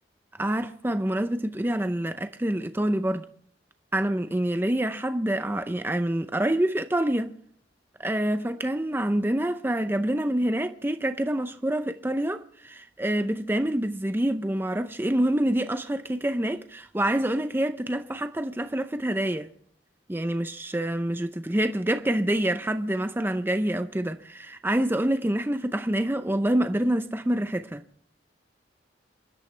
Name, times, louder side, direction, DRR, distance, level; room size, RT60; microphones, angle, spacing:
voice 1, 0.4-3.3 3.9-7.3 8.0-19.5 20.1-27.8, right 1 dB, 10° right, 0.6 m, -26 dB
27.0 x 11.5 x 3.3 m
head